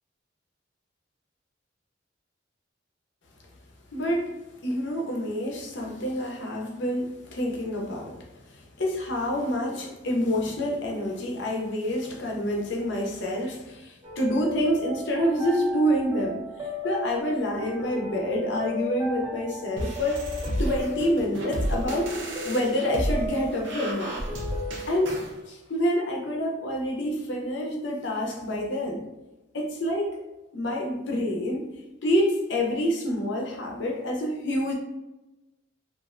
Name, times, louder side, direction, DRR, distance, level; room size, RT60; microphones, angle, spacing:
voice 1, 3.9-4.3 4.6-8.2 8.5-16.4 16.8-20.2 20.6-22.1 22.4-24.2 24.9-25.2 25.5-29.0 29.5-30.1 30.5-31.7 32.0-34.7, equal, 65° left, 0 dB, 0.6 m, -27 dB
sound 1, 14.0-25.1, left 1 dB, 20° right, 0.5 m, -36 dB
sound 2, 19.8-25.3, equal, 70° right, 0.6 m, -32 dB
3.1 x 2.5 x 2.4 m, 1.0 s
head